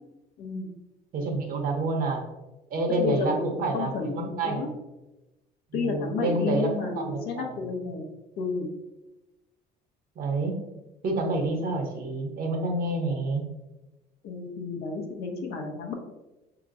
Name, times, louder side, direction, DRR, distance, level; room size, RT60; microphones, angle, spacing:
voice 1, 0.4-0.7 3.0-4.7 5.7-8.1 8.4-8.7 14.2-15.9, left 4 dB, 85° left, 3 dB, 0.8 m, -31 dB
voice 2, 1.1-2.2 2.7-4.6 5.7-7.6 10.2-10.6 11.0-13.4, right 2 dB, 60° right, 2 dB, 0.9 m, -28 dB
4.6 x 2.9 x 2.5 m, 1.0 s
cardioid pair, 110°, 17 cm